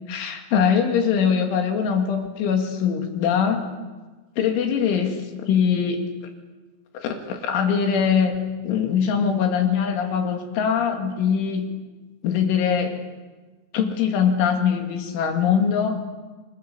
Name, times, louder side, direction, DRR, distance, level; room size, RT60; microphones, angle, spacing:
voice 1, 0.1-3.6 4.4-6.0 6.9-8.4 8.6-11.7 12.2-13.0 13.7-16.0, left 7 dB, 85° left, 4 dB, 4.8 m, -22 dB
26.0 x 23.0 x 6.9 m, 1.3 s
omnidirectional pair, 5.4 m